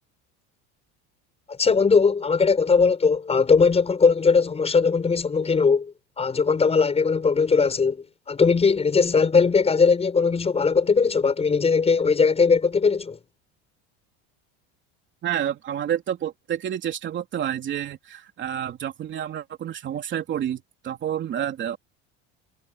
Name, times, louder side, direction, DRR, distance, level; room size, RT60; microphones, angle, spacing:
voice 1, 1.5-13.2, left 5 dB, 20° left, 6.8 m, -20 dB
voice 2, 15.2-21.8, right 10 dB, 35° right, 3.3 m, -29 dB
cardioid pair, 140°, 31 cm